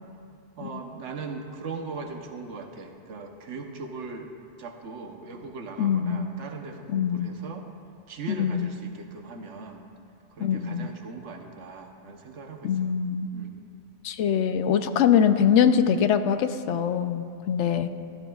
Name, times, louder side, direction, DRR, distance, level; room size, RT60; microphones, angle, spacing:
voice 1, 0.6-4.3 4.6-7.7 8.1-9.9 10.3-12.9 13.3-13.6, right 4 dB, 85° right, 4 dB, 1.2 m, -39 dB
voice 2, 5.8-6.3 6.9-7.3 8.3-8.7 10.4-10.9 12.6-13.3 14.0-17.9, left 8 dB, 80° left, 10 dB, 0.9 m, -23 dB
15.0 x 12.5 x 2.3 m, 2.4 s
omnidirectional pair, 1.2 m